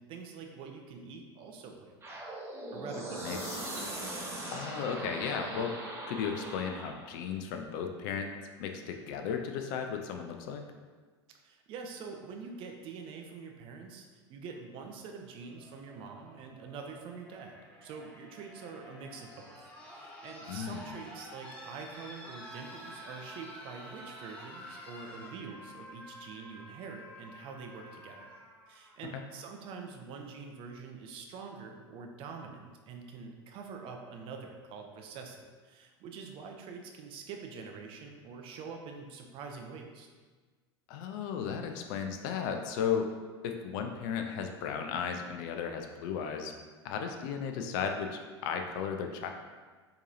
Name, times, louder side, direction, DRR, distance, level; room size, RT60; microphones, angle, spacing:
voice 1, 0.0-2.2 2.7-3.4 11.4-19.6 19.8-28.3 28.7-40.1, right 5 dB, 40° right, 3 dB, 0.5 m, -45 dB
sound 1, 2.0-7.1, right 1 dB, 20° right, 0.9 m, -40 dB
voice 2, 3.2-3.6 4.5-5.8 6.1-10.6 20.5-20.9 29.1-29.2 40.9-43.1 43.4-46.5 46.8-49.3, left 7 dB, 50° left, 4 dB, 0.4 m, -35 dB
sound 2, 15.5-29.5 30.7-30.8, equal, 10° left, 0.7 m, -50 dB
4.5 x 2.9 x 2.6 m, 1.4 s
figure-of-eight pair, 80°, 14 cm